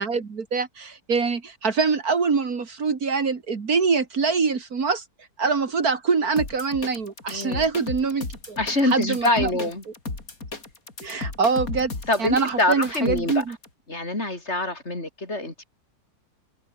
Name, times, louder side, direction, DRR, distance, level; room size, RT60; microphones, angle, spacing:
voice 1, 0.0-5.0 5.4-8.6 8.8-9.5 11.0-11.9 12.2-13.6, right 5 dB, 60° right, 2.6 m, -24 dB
sound 1, 6.4-13.7, left 3 dB, 55° left, 4.2 m, -34 dB
voice 2, 7.3-7.6 8.6-9.8 12.1-13.4 13.9-15.7, left 2 dB, 40° left, 4.9 m, -25 dB
omnidirectional pair, 1.8 m